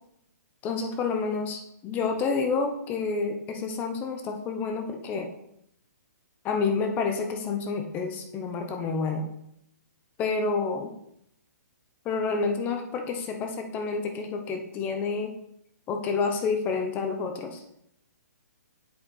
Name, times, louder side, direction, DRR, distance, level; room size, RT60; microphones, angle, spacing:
voice 1, 0.6-5.3 6.4-9.3 10.2-10.9 12.0-15.3 15.9-17.6, left 4 dB, 20° left, 4 dB, 0.8 m, -29 dB
7.7 x 5.7 x 4.1 m, 0.75 s
hypercardioid pair, 155°, 9 cm